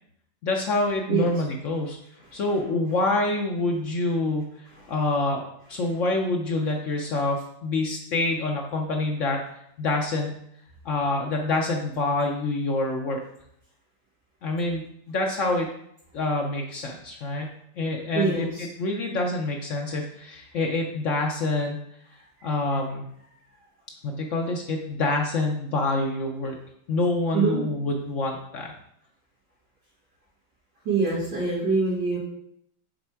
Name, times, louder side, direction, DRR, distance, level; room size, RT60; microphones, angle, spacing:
voice 1, 0.4-2.0 2.3-4.5 4.9-9.4 9.8-10.4 10.8-13.2 14.4-15.7 16.1-17.5 17.8-21.8 22.4-23.1 24.0-26.6 26.9-28.7, left 2 dB, 85° left, 1 dB, 0.6 m, -26 dB
voice 2, 18.1-18.6 27.3-27.6 30.8-32.2, right 4 dB, 65° right, -13 dB, 3.1 m, -24 dB
6.8 x 3.4 x 4.4 m, 0.73 s
omnidirectional pair, 2.1 m